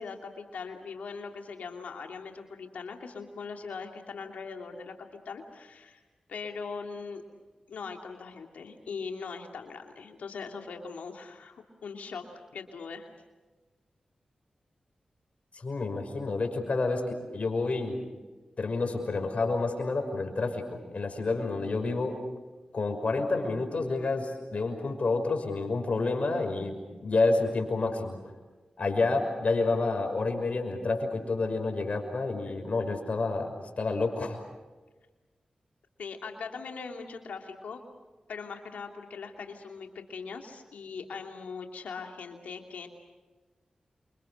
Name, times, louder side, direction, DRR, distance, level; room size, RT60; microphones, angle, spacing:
voice 1, 0.0-6.0 6.3-7.2 7.7-12.2 12.5-13.1 36.0-37.8 38.3-42.9, left 5 dB, 90° left, 3 dB, 2.8 m, -40 dB
voice 2, 15.5-18.0 18.6-22.2 22.7-28.2 28.8-34.4, left 3 dB, 60° left, 5 dB, 5.9 m, -29 dB
28.5 x 25.5 x 6.6 m, 1.2 s
cardioid pair, 40°, 2 cm